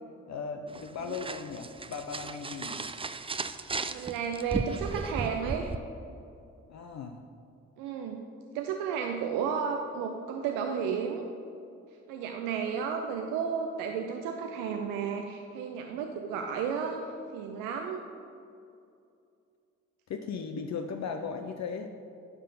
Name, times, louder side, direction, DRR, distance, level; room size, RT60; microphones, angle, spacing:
voice 1, 0.3-2.9 6.7-7.2 20.1-21.9, left 5 dB, 55° left, 5 dB, 0.7 m, -37 dB
Envelope opened, 0.7-5.8, right 4 dB, 15° right, 0.4 m, -36 dB
voice 2, 3.9-5.7 7.8-8.3 8.5-11.2 12.1-17.0 17.3-18.0, right 6 dB, 90° right, 3 dB, 0.6 m, -33 dB
9.8 x 5.5 x 5.4 m, 2.5 s
hypercardioid pair, 45°, 32 cm